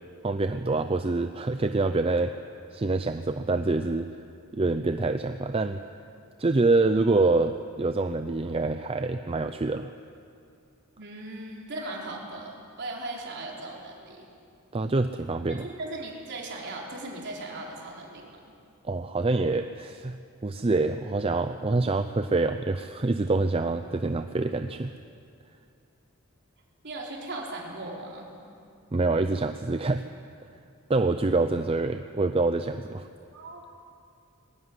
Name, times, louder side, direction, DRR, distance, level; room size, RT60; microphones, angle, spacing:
voice 1, 0.2-2.3 2.7-4.1 4.5-5.8 6.4-9.9 14.7-15.7 18.8-24.9 28.9-30.0 30.9-33.1, right 3 dB, 25° right, 8 dB, 0.5 m, -26 dB
voice 2, 11.0-14.3 15.6-18.3 26.8-28.3 33.3-33.6, right 2 dB, 55° right, -2 dB, 4.3 m, -38 dB
20.0 x 16.5 x 9.8 m, 2.4 s
head